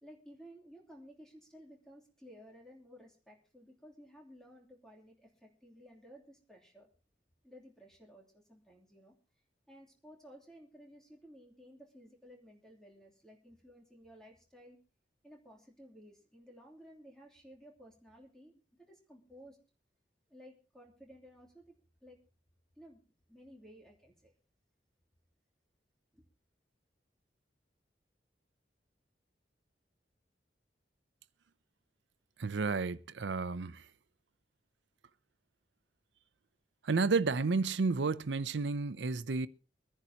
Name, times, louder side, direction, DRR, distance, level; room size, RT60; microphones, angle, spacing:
voice 1, 0.0-6.9 7.4-9.1 9.7-14.8 15.2-19.6 20.3-22.2 22.8-24.3 26.1-26.2, equal, 5° left, 2.9 m, -56 dB
voice 2, 32.4-33.9 36.8-39.5, right 4 dB, 80° right, 0.6 m, -31 dB
24.5 x 10.5 x 2.8 m
head